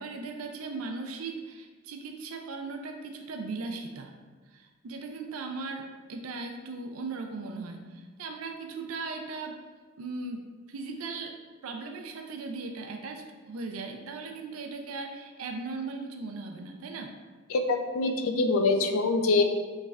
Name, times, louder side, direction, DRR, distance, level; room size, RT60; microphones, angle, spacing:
voice 1, 0.0-4.1 4.5-9.6 10.0-10.4 10.7-11.4 11.6-17.1, right 3 dB, 85° right, 4 dB, 0.4 m, -38 dB
voice 2, 17.5-19.4, left 3 dB, 75° left, 5 dB, 0.5 m, -24 dB
6.3 x 3.2 x 2.4 m, 1.4 s
head